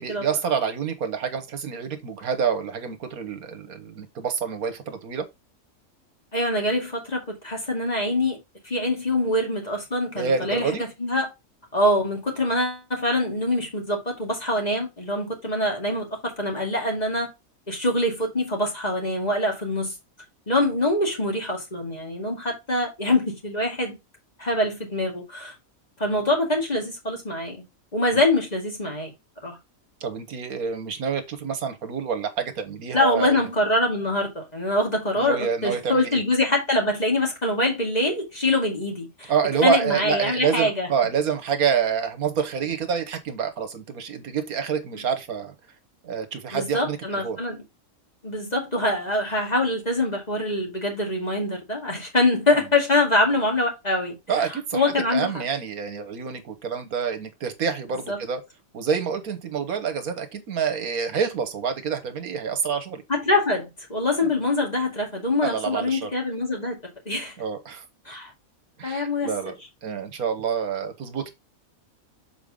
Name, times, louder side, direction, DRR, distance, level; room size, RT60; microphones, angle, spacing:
voice 1, 0.0-5.3 10.1-10.8 28.1-28.2 30.0-33.4 35.2-36.2 39.3-45.5 46.0-47.4 54.3-58.4 58.7-63.0 64.2-64.3 65.4-66.1 67.4-67.8 68.8-69.6 69.8-71.3, right 6 dB, 80° right, 1.6 m, -27 dB
voice 2, 6.3-8.4 8.6-11.3 11.7-17.3 17.7-19.9 20.5-24.0 24.4-25.5 26.0-27.6 27.9-29.1 29.4-29.6 32.9-39.3 39.6-40.9 46.5-47.6 48.2-54.1 54.7-55.4 58.1-58.2 63.1-66.8 67.1-67.3 68.1-68.3 68.8-69.3, left 1 dB, 30° left, 2.3 m, -24 dB
7.0 x 4.5 x 3.6 m
omnidirectional pair, 1.5 m